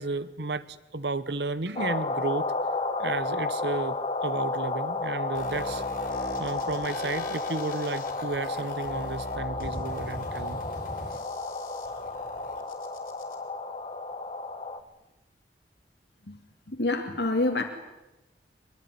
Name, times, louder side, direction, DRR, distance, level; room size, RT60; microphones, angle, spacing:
voice 1, 0.0-2.5 3.0-4.0 4.2-5.8 6.4-10.6, right 3 dB, 70° right, 15 dB, 1.0 m, -32 dB
sound 1, 1.8-14.8, left 3 dB, 35° left, 1.6 m, -32 dB
sound 2, 5.3-13.3, left 1 dB, 50° left, 5.3 m, -42 dB
voice 2, 16.7-17.6, left 2 dB, 70° left, 4 dB, 2.6 m, -27 dB
24.5 x 22.0 x 9.7 m, 0.99 s
head